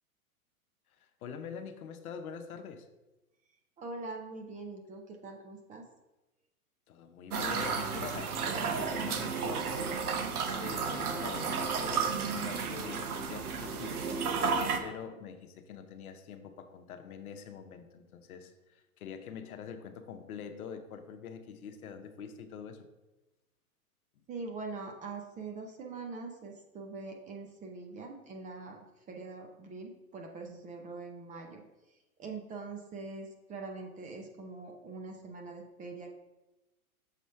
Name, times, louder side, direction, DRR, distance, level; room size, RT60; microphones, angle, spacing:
voice 1, 1.0-2.9 6.9-10.0 10.6-14.3 14.8-22.9, left 7 dB, 70° left, 8 dB, 0.8 m, -45 dB
voice 2, 3.8-5.8 24.3-36.2, right 3 dB, 15° right, 2 dB, 0.6 m, -43 dB
sound 1, 7.3-14.8, right 5 dB, 75° right, 1.0 m, -32 dB
6.6 x 3.1 x 5.6 m, 1.0 s
hypercardioid pair, 115°, 44 cm